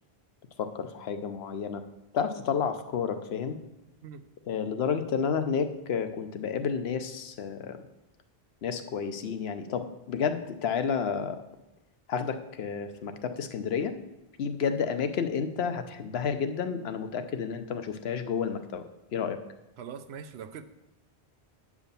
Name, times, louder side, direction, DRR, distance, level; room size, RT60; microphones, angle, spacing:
voice 1, 0.6-1.8 2.1-3.6 4.5-7.8 8.6-11.4 12.1-14.0 14.4-18.8 19.1-19.4, left 6 dB, 70° left, 9 dB, 1.0 m, -31 dB
voice 2, 19.8-20.6, right 7 dB, 80° right, 10 dB, 0.9 m, -42 dB
9.0 x 4.9 x 6.8 m, 0.93 s
omnidirectional pair, 1.1 m